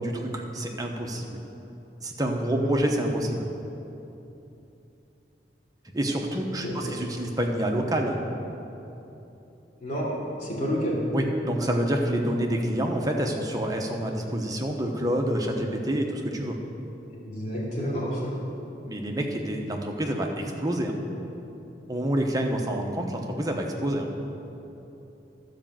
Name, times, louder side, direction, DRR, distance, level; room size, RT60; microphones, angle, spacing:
voice 1, 0.0-1.4 2.0-3.5 5.8-8.2 11.1-16.6 18.9-21.0 21.9-24.1, right 1 dB, 20° right, 1 dB, 0.9 m, -27 dB
voice 2, 6.6-6.9 9.8-10.1 10.3-11.0 17.1-18.3, equal, 45° left, -6 dB, 2.7 m, -30 dB
12.0 x 5.0 x 7.5 m, 2.9 s
head